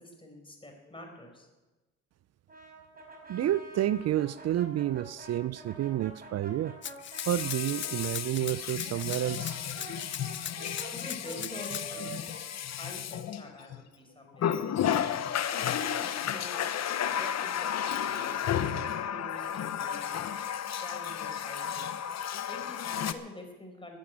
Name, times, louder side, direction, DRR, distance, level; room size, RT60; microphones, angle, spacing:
voice 1, 0.0-1.5 10.9-12.3 12.8-14.8 15.6-16.7 17.1-20.3 20.8-22.0 22.5-24.0, left 1 dB, 15° left, 3 dB, 4.8 m, -47 dB
Brass instrument, 2.5-8.2 8.8-13.6, right 2 dB, 30° right, 5.3 m, -47 dB
voice 2, 3.3-6.8 7.3-9.6, right 13 dB, 60° right, 17 dB, 0.5 m, -30 dB
Water tap faucet, 3.4-3.6 7.0-13.8 14.4-23.1, left 9 dB, 60° left, 1.0 m, -33 dB
Rattle (instrument), 6.8-11.8, left 10 dB, 40° left, 0.5 m, -40 dB
14.5 x 9.5 x 9.6 m, 1.1 s
cardioid pair, 90°, 30 cm